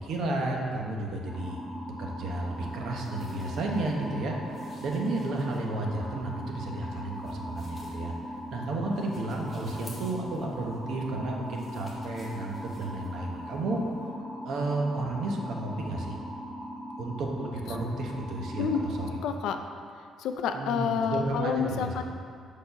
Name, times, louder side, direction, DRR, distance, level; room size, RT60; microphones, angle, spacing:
voice 1, 0.0-8.1 8.5-13.8 14.4-16.2 17.0-19.1 20.5-22.0, right 2 dB, 55° right, 0 dB, 0.8 m, -32 dB
sound 1, 1.2-19.1, equal, 5° right, 1.4 m, -40 dB
sound 2, 2.3-14.1, left 2 dB, 20° left, 1.0 m, -56 dB
voice 2, 19.2-19.6 20.2-22.0, left 6 dB, 75° left, 6 dB, 0.4 m, -28 dB
5.0 x 4.5 x 5.7 m, 2.3 s
cardioid pair, 175°, 0 cm